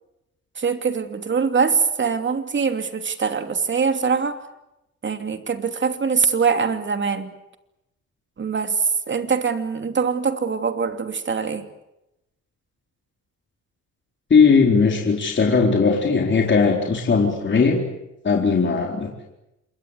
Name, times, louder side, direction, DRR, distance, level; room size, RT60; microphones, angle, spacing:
voice 1, 0.6-4.4 5.0-7.3 8.4-11.7, right 5 dB, 40° right, 8 dB, 2.9 m, -23 dB
voice 2, 14.3-17.8 18.2-19.1, left 5 dB, 40° left, 1 dB, 4.1 m, -18 dB
27.5 x 22.0 x 8.3 m, 0.90 s
cardioid pair, 90°, 30 cm